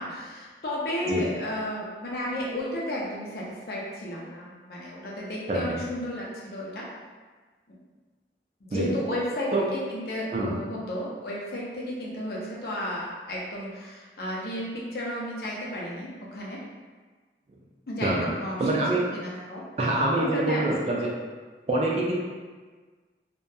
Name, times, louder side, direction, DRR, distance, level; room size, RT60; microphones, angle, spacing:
voice 1, 0.0-6.9 7.7-7.8 8.7-16.6 17.9-19.6 20.2-20.8, left 1 dB, 55° left, -4 dB, 0.5 m, -33 dB
voice 2, 18.6-19.0 19.8-21.1 21.7-22.2, right 2 dB, 35° right, -3 dB, 0.3 m, -25 dB
2.7 x 2.1 x 2.2 m, 1.4 s
head